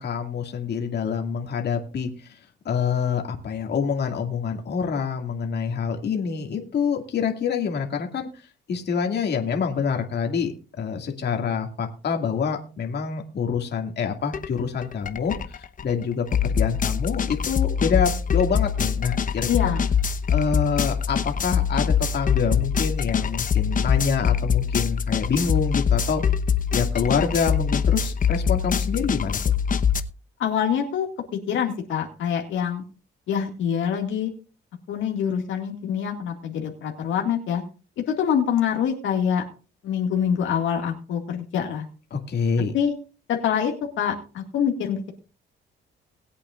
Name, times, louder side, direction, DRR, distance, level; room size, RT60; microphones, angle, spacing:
voice 1, 0.0-2.4 2.7-8.3 8.7-19.7 20.3-26.2 26.7-29.4 42.1-42.7, left 6 dB, 55° left, 3 dB, 2.2 m, -26 dB
sound 1, 14.3-14.5 14.8-30.0, left 7 dB, 40° left, 1.0 m, -23 dB
voice 2, 19.5-19.9 30.4-31.1 31.5-32.8 33.3-34.3 34.9-37.6 38.1-39.4 39.8-41.8 42.7-42.9 43.3-45.1, left 8 dB, 75° left, 2 dB, 2.0 m, -25 dB
20.5 x 8.4 x 2.5 m, 0.34 s
cardioid pair, 90°, 20 cm